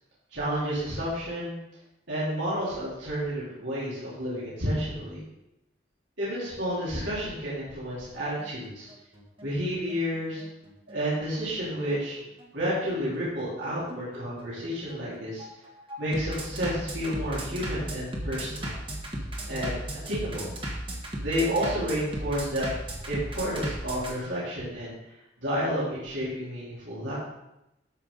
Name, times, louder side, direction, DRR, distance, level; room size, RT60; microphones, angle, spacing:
voice 1, 0.3-1.6 2.1-5.2 6.2-8.9 9.4-10.4 10.9-12.2 12.5-15.5 16.0-18.7 19.5-19.8 20.0-20.5 21.2-22.7 23.1-25.0 25.4-27.1, equal, 75° right, -8 dB, 3.9 m, -30 dB
Bass drum, 8.1-24.1, right 1 dB, 30° right, 1.7 m, -36 dB
13.0 x 5.9 x 4.1 m, 0.88 s
head